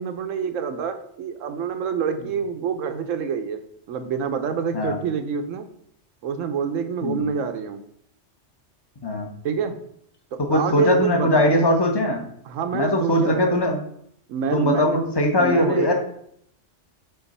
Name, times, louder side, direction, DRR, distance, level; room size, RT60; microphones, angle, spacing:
voice 1, 0.0-3.6 3.9-5.7 6.2-7.8 9.4-9.8 10.3-11.6 12.5-13.6 14.3-15.0 15.4-15.9, right 6 dB, 90° right, 8 dB, 1.1 m, -27 dB
voice 2, 9.0-9.3 10.4-12.2 12.7-13.8 14.5-15.9, left 1 dB, 20° left, 3 dB, 0.9 m, -20 dB
5.9 x 3.9 x 5.4 m, 0.70 s
omnidirectional pair, 1.3 m